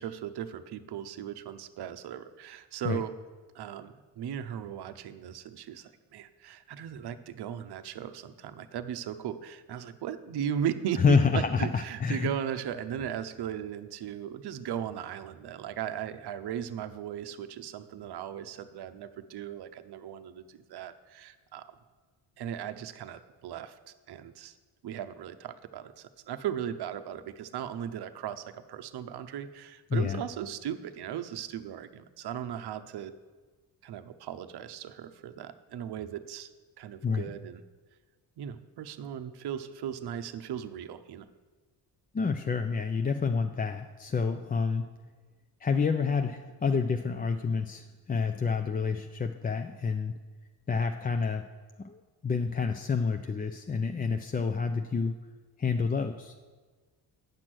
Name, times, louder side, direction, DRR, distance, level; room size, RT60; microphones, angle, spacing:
voice 1, 0.0-3.1 3.5-21.7 22.4-24.5 24.8-33.1 33.8-36.5 36.8-37.6 38.4-41.3, right 9 dB, 55° right, 10 dB, 0.7 m, -37 dB
voice 2, 11.0-12.3 29.9-30.2 37.0-37.3 42.1-44.9 45.6-50.1 50.7-51.4 51.8-55.1 55.6-56.3, left 5 dB, 20° left, 6 dB, 0.4 m, -28 dB
8.9 x 6.1 x 6.1 m, 1.4 s
supercardioid pair, 65°, 46 cm